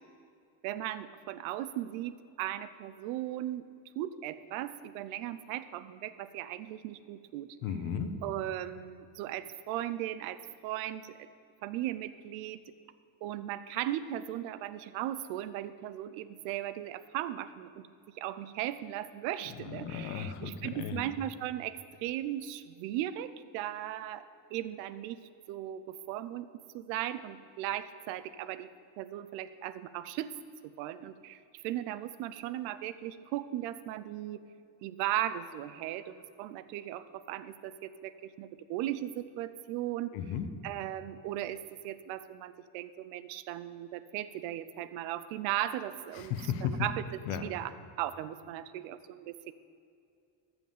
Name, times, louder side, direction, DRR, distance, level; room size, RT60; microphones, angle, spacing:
voice 1, 0.6-3.6 4.0-7.6 8.2-11.3 11.6-12.6 13.2-17.9 18.1-24.2 24.5-25.2 25.5-26.5 26.7-28.7 29.0-30.3 30.6-34.4 34.8-40.1 40.6-46.3 46.6-47.7 48.0-49.5, right 13 dB, 90° right, 14 dB, 0.7 m, -37 dB
voice 2, 7.6-8.2 19.5-21.0 40.1-40.5 46.1-46.9 47.3-47.4, left 8 dB, 85° left, 8 dB, 1.2 m, -35 dB
14.0 x 6.1 x 7.3 m, 2.5 s
supercardioid pair, 75°, 50 cm